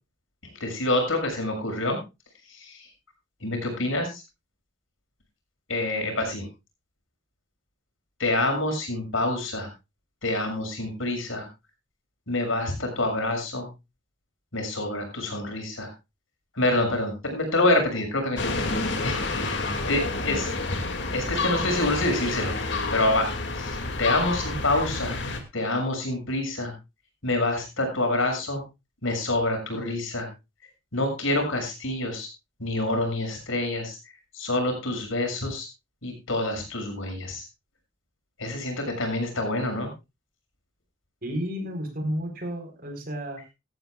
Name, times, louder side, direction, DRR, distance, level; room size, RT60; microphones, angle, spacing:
voice 1, 0.6-2.0 2.5-2.9 3.4-4.2 5.7-6.5 8.2-9.7 10.2-11.5 12.3-13.7 14.5-15.9 16.5-20.5 21.1-22.5 22.9-25.2 25.5-26.7 27.2-28.6 29.0-30.3 30.9-32.3 32.6-34.0 34.3-35.7 36.0-37.4 38.4-39.9, left 2 dB, 90° left, 3 dB, 6.5 m, -27 dB
sound 1, 18.4-25.4, left 3 dB, 60° left, 2.3 m, -29 dB
voice 2, 41.2-43.4, equal, 45° right, 5 dB, 4.2 m, -32 dB
17.0 x 14.0 x 2.4 m, 0.25 s
head